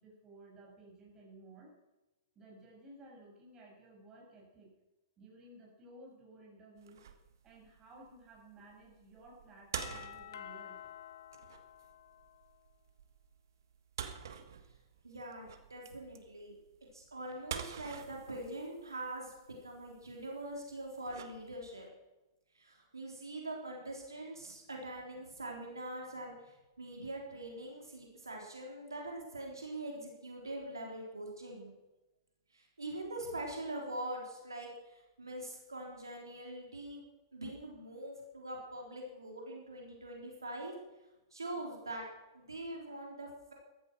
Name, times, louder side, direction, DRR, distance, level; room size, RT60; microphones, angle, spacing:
voice 1, 0.0-1.7 2.3-4.7 5.2-7.1 7.4-10.8, right 2 dB, 25° right, -1 dB, 6.9 m, -56 dB
sound 1, 6.8-21.9, right 8 dB, 65° right, 1.5 m, -48 dB
Doorbell, 9.8-12.6, left 11 dB, 65° left, 0.8 m, -50 dB
voice 2, 15.0-16.6 16.9-19.3 19.6-21.9 22.5-31.7 32.5-37.1 37.3-40.7 41.3-42.0 42.3-43.5, right 1 dB, 85° right, 0 dB, 3.6 m, -43 dB
14.5 x 12.5 x 6.1 m, 1.0 s
figure-of-eight pair, 110°, 2 cm